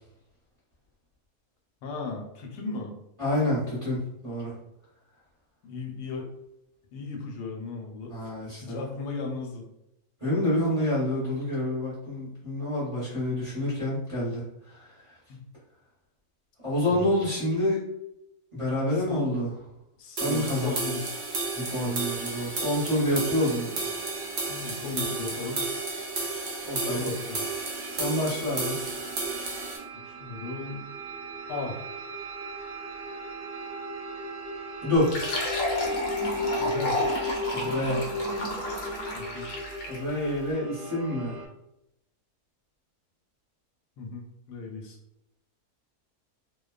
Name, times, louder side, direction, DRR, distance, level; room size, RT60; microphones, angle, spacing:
voice 1, 1.8-2.9 5.6-6.3 6.9-8.1 8.6-9.6 15.3-15.4 16.8-17.2 18.9-19.3 20.0-21.2 21.7-22.0 24.5-25.6 26.8-27.4 29.9-30.8 31.5-31.9 36.6-37.0 39.1-39.5 44.0-45.0, left 4 dB, 90° left, 1 dB, 1.2 m, -36 dB
voice 2, 3.2-4.5 8.1-8.8 10.2-14.9 16.6-17.8 18.5-19.5 20.2-20.7 21.5-23.7 26.6-27.1 27.9-28.8 34.8-35.2 37.5-38.1 39.9-41.4, left 1 dB, 25° right, -8 dB, 0.8 m, -28 dB
sound 1, 20.2-29.8, right 3 dB, 85° right, 0.4 m, -32 dB
sound 2, 21.5-41.5, equal, 70° right, 1.0 m, -37 dB
Fill (with liquid), 35.0-40.1, left 1 dB, 65° left, 0.9 m, -32 dB
2.6 x 2.2 x 2.3 m, 0.84 s
omnidirectional pair, 1.7 m